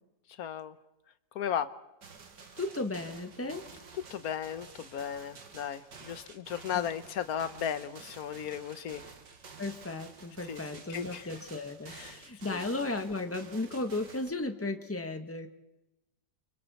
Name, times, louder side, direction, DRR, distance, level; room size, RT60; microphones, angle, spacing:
voice 1, 0.4-0.7 1.3-1.7 4.1-9.0 10.5-10.6 10.9-11.3 11.9-12.2 12.5-12.6, left 9 dB, 65° left, 12 dB, 1.4 m, -35 dB
sound 1, 2.0-14.3, right 5 dB, 85° right, 2.3 m, -51 dB
voice 2, 2.6-3.7 6.7-6.8 9.6-15.5, left 2 dB, 10° left, 6 dB, 1.2 m, -35 dB
29.5 x 25.0 x 4.2 m, 0.99 s
omnidirectional pair, 1.8 m